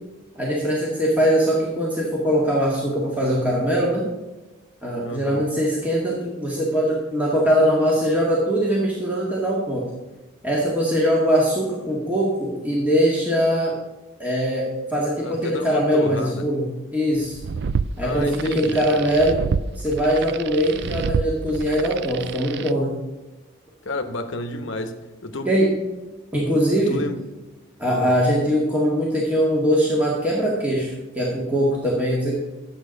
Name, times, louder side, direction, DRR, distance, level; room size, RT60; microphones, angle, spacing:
voice 1, 0.4-4.0 4.8-9.8 10.4-13.8 14.2-17.4 18.0-22.9 25.5-25.7 26.3-27.0 27.8-32.3, equal, 10° right, 1.8 m, -21 dB
voice 2, 5.0-5.4 15.2-16.5 18.0-19.0 23.8-25.5 26.8-27.2 27.9-28.2, left 2 dB, 70° left, 1.0 m, -31 dB
sound 1, 17.2-22.7, right 5 dB, 55° right, 0.4 m, -29 dB
11.0 x 7.7 x 5.2 m
head